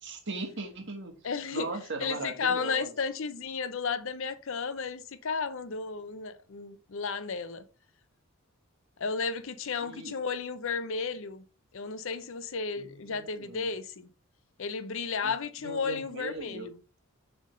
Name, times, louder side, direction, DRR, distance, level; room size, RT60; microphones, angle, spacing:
voice 1, 0.0-1.2 1.5-2.9 9.8-10.2 12.8-13.7 15.2-15.3 15.6-16.7, right 3 dB, 55° right, 1.5 m, -38 dB
voice 2, 1.2-1.7 2.0-7.6 9.0-11.4 11.7-14.1 14.6-16.7, left 5 dB, 60° left, 0.6 m, -33 dB
7.5 x 3.5 x 5.3 m
head